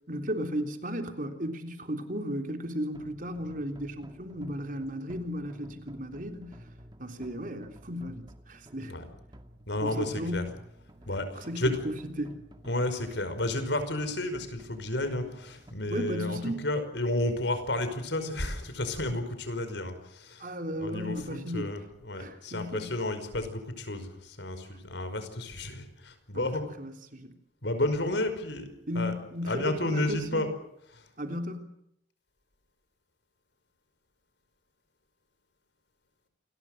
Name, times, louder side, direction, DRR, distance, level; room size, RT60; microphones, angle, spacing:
voice 1, 0.1-6.6 7.0-9.0 9.8-10.4 11.4-11.6 12.2-12.4 15.9-16.7 20.4-21.7 22.2-22.9 26.3-26.4 26.8-27.3 28.9-30.4 31.2-31.7, equal, 45° right, 5 dB, 3.5 m, -35 dB
sound 1, 2.9-15.7, equal, 25° right, 2.3 m, -52 dB
voice 2, 9.7-10.4 11.1-11.8 12.6-26.6 27.6-29.1 29.4-30.5 30.9-31.1, left 1 dB, 70° left, 9 dB, 5.4 m, -32 dB
28.5 x 21.5 x 6.6 m, 0.78 s
head